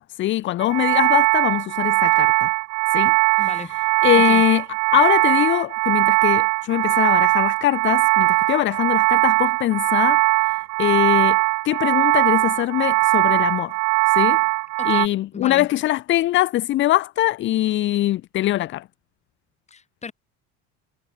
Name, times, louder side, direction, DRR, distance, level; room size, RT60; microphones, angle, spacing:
voice 1, 0.0-2.5 2.9-3.7 4.0-4.6 4.9-11.4 11.6-13.8 14.1-14.4 14.8-18.8, left 15 dB, 40° left, 0.6 m, -22 dB
sound 1, 0.6-15.1, right 27 dB, 70° right, 1.3 m, -20 dB
voice 2, 3.4-3.7 4.1-4.4 14.8-15.7 19.7-20.1, left 5 dB, 20° left, 6.3 m, -35 dB
cardioid pair, 130°, 30 cm